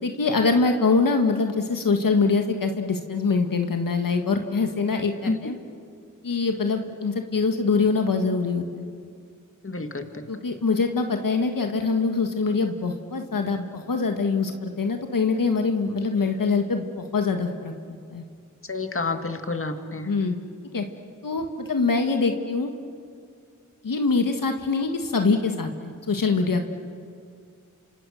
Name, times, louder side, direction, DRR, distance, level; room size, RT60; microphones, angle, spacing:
voice 1, 0.0-5.6 6.2-8.8 10.3-17.7 18.1-18.2 20.0-20.4 20.7-20.8 21.2-22.7 23.8-26.6, left 4 dB, 85° left, 5 dB, 1.6 m, -24 dB
voice 2, 9.6-10.1 18.7-20.1, left 3 dB, 40° left, 6 dB, 2.0 m, -29 dB
27.0 x 26.5 x 6.4 m, 2.2 s
cardioid pair, 45°, 33 cm